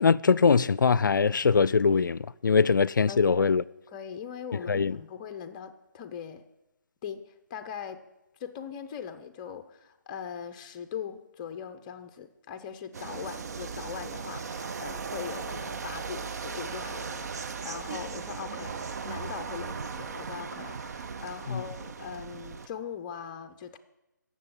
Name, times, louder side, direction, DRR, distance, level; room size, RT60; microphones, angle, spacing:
voice 1, 0.0-3.6 4.7-5.0 21.5-21.6, left 5 dB, 80° left, 0.4 m, -22 dB
voice 2, 3.1-3.5 3.9-6.4 7.0-8.0 8.4-23.8, left 7 dB, 25° left, 0.7 m, -40 dB
sound 1, 12.9-22.7, right 5 dB, 55° right, 0.7 m, -37 dB
17.0 x 7.2 x 5.4 m
figure-of-eight pair, 150°, 10 cm